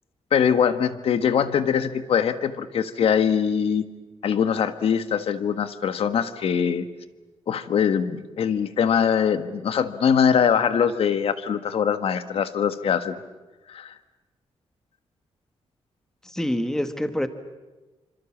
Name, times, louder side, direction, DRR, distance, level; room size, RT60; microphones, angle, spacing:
voice 1, 0.3-3.8 4.2-6.9 7.5-13.2 13.7-13.9, left 7 dB, 65° left, 11 dB, 1.5 m, -22 dB
voice 2, 16.2-17.3, left 1 dB, 5° left, 9 dB, 1.4 m, -26 dB
27.5 x 26.0 x 7.3 m, 1.2 s
wide cardioid pair, 160°, 11 cm